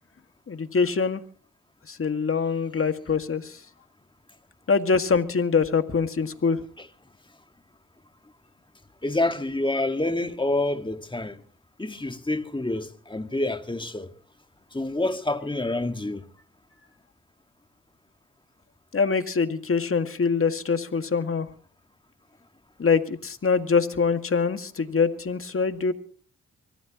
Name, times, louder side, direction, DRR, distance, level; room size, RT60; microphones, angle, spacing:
voice 1, 0.5-1.2 1.9-3.6 4.7-6.6 18.9-21.5 22.8-25.9, left 5 dB, 45° left, 2.0 m, -24 dB
voice 2, 9.0-11.4 11.8-14.1 14.7-16.2, left 2 dB, 15° left, 1.8 m, -27 dB
24.5 x 14.5 x 3.0 m
cardioid pair, 60°, 30 cm